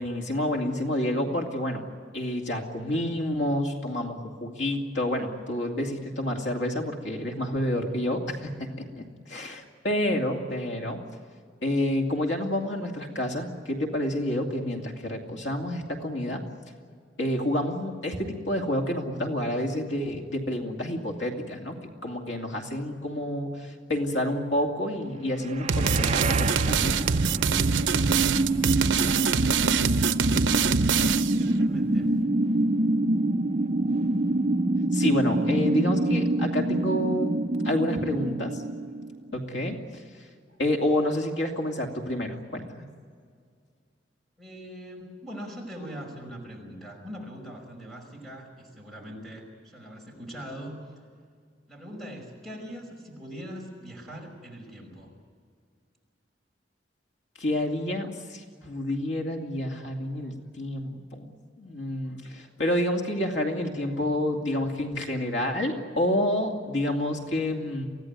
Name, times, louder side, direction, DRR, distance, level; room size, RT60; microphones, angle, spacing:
voice 1, 0.0-1.8 2.1-11.0 11.6-16.4 17.2-21.8 22.0-27.0 34.9-37.3 37.6-38.6 39.3-40.0 40.6-42.9 57.4-67.9, left 1 dB, 85° left, 2 dB, 2.6 m, -29 dB
sound 1, 25.5-39.4, right 2 dB, 35° right, 0.6 m, -26 dB
sound 2, 25.7-31.4, right 6 dB, 90° right, 0.7 m, -24 dB
voice 2, 31.3-32.1 44.4-50.8 51.7-55.1, equal, ahead, 1 dB, 5.5 m, -41 dB
24.0 x 16.5 x 9.4 m, 2.1 s
head